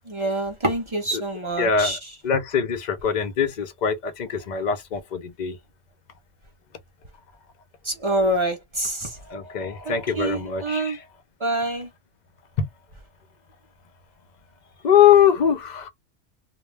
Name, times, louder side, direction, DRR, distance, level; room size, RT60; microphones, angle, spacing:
voice 1, 0.1-2.0 7.8-9.1 9.9-11.0 11.4-11.9, right 1 dB, 40° right, 0.4 m, -26 dB
voice 2, 1.6-5.6 9.3-11.0 12.6-12.7 14.8-15.9, left 8 dB, 55° left, 0.5 m, -22 dB
2.2 x 2.2 x 3.2 m
omnidirectional pair, 1.3 m